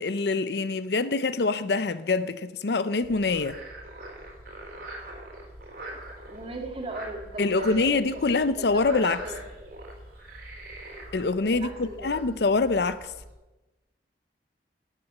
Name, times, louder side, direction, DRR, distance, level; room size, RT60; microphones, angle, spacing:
voice 1, 0.0-3.6 7.4-9.2 11.1-13.1, left 3 dB, 65° left, 0.6 m, -25 dB
Frog, 3.0-13.3, right 1 dB, 60° right, 4.1 m, -43 dB
voice 2, 6.3-8.1 8.6-9.4 11.5-12.2, right 1 dB, 35° right, 2.3 m, -37 dB
12.5 x 7.9 x 9.4 m
head